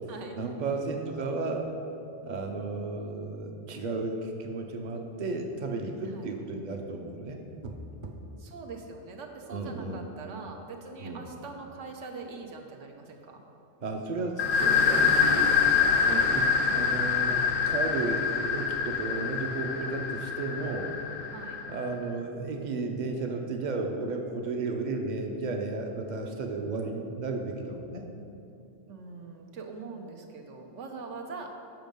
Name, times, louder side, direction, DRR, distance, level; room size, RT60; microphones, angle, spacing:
voice 1, 0.3-1.7 2.2-7.8 8.0-8.2 9.5-10.1 11.0-11.2 13.8-15.5 16.0-20.9 21.7-28.0, right 3 dB, 40° right, 3 dB, 0.8 m, -33 dB
voice 2, 8.4-13.4 21.3-21.6 28.9-31.5, right 4 dB, 70° right, 2 dB, 1.2 m, -42 dB
sound 1, 14.4-21.9, left 6 dB, 85° left, 1.0 m, -26 dB
7.7 x 6.2 x 5.2 m, 2.8 s
omnidirectional pair, 1.3 m